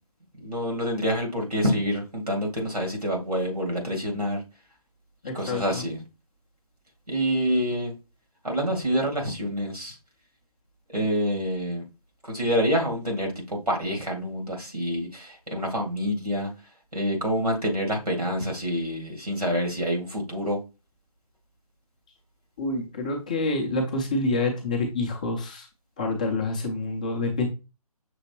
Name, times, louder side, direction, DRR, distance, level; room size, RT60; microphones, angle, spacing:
voice 1, 0.4-4.4 5.3-6.0 7.1-7.9 8.4-10.0 10.9-11.8 12.3-16.5 16.9-20.6, equal, 90° right, 1 dB, 2.1 m, -27 dB
voice 2, 5.2-5.8 22.6-25.7 26.0-27.5, left 2 dB, 15° left, 0 dB, 0.4 m, -27 dB
6.0 x 2.8 x 2.9 m, 0.29 s
figure-of-eight pair, 145°, 19 cm